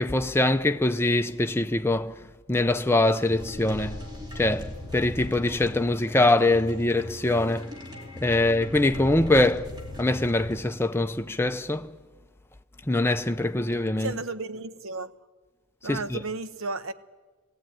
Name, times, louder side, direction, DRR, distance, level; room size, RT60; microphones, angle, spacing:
voice 1, 0.0-2.2 2.5-4.0 4.4-7.7 8.2-9.7 10.0-11.9 12.9-14.1 15.9-16.2, left 2 dB, 10° left, 0.5 m, -23 dB
sound 1, 3.0-10.6, left 1 dB, 20° right, 2.7 m, -40 dB
voice 2, 14.0-15.1 15.8-16.9, right 3 dB, 70° right, 0.9 m, -33 dB
19.0 x 16.0 x 9.2 m
head